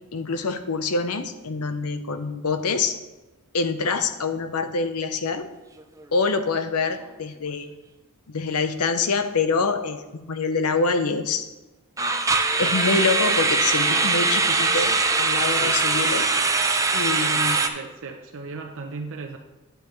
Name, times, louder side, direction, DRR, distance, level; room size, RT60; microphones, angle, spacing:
voice 1, 0.1-2.9 3.5-5.5 6.1-7.7 8.3-11.4 12.6-16.3 16.9-17.6, left 4 dB, 75° left, 9 dB, 0.8 m, -25 dB
sound 1, 5.8-6.1 6.3-6.5 7.0-7.1 12.0-17.7, right 3 dB, 15° right, 0.5 m, -22 dB
voice 2, 16.1-16.5 17.2-19.4, right 4 dB, 60° right, 3 dB, 0.7 m, -37 dB
9.0 x 8.9 x 3.2 m, 1.1 s
head